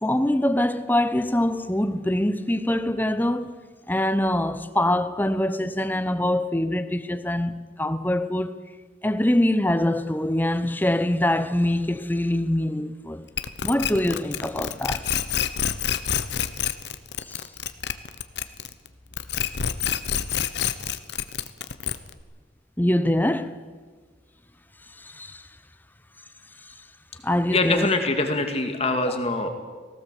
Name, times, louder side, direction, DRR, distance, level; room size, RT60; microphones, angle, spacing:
voice 1, 0.0-3.5 3.9-8.6 9.0-13.2 13.6-15.0 22.8-23.5 25.0-25.4 27.2-27.9, left 1 dB, 10° left, 0.8 m, -24 dB
sound 1, 13.4-18.9 19.1-22.2, left 8 dB, 65° left, 1.0 m, -27 dB
voice 2, 27.5-29.5, left 2 dB, 35° left, 2.2 m, -23 dB
18.5 x 16.5 x 8.3 m
head